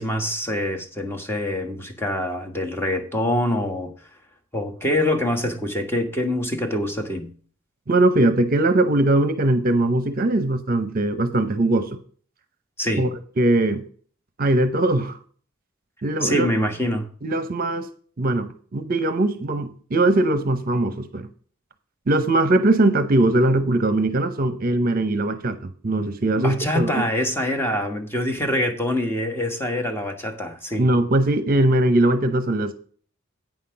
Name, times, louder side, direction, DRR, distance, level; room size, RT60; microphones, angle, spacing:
voice 1, 0.0-3.9 4.5-7.3 12.8-13.1 16.2-17.1 26.4-30.9, left 1 dB, 10° left, 1.4 m, -25 dB
voice 2, 7.9-12.0 13.0-13.1 13.4-13.8 14.4-15.1 16.0-16.5 17.2-17.9 18.2-21.3 22.1-27.0 30.8-32.7, right 2 dB, 45° right, 0.8 m, -20 dB
9.0 x 5.8 x 5.7 m
head